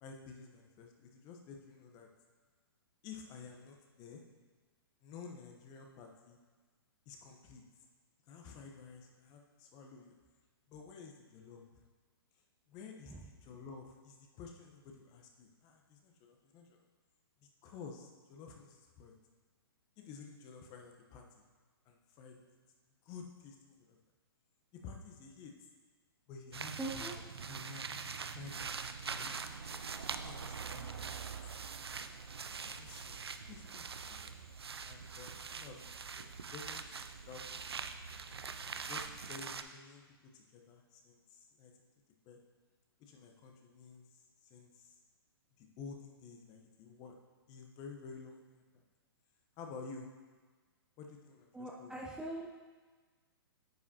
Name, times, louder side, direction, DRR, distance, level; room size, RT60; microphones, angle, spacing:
voice 1, 0.0-2.1 3.0-4.2 5.0-6.4 7.1-7.6 8.3-10.1 10.7-11.8 12.7-16.8 17.6-19.1 20.0-21.2 21.9-22.6 23.0-24.0 24.7-25.5 26.3-27.2 27.4-27.9 28.3-29.4 30.2-31.1 32.5-33.1 33.4-34.3 34.9-37.6 38.7-40.0 40.3-41.7 42.2-42.4 43.0-44.1 44.4-45.0 45.6-47.2 47.5-48.7 49.6-50.1 51.0-51.9, left 5 dB, 30° left, 2 dB, 1.0 m, -52 dB
sound 1, 26.5-39.6, right 5 dB, 80° right, 0.5 m, -43 dB
voice 2, 26.8-27.2 51.5-52.5, right 2 dB, 5° right, -3 dB, 0.6 m, -42 dB
9.4 x 7.2 x 2.8 m, 1.4 s
figure-of-eight pair, 120°, 13 cm